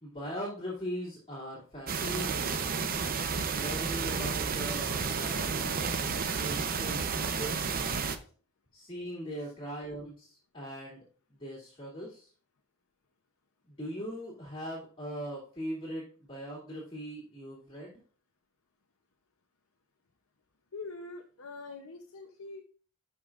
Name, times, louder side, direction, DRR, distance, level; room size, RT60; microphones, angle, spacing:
voice 1, 0.0-2.6 3.5-7.6 8.7-12.3 13.7-18.0, equal, 25° left, -7 dB, 2.6 m, -40 dB
sound 1, 1.9-8.2, right 5 dB, 40° right, 0.7 m, -31 dB
voice 2, 20.7-22.6, left 3 dB, 70° left, 2 dB, 0.8 m, -43 dB
11.5 x 5.5 x 2.5 m, 0.42 s
head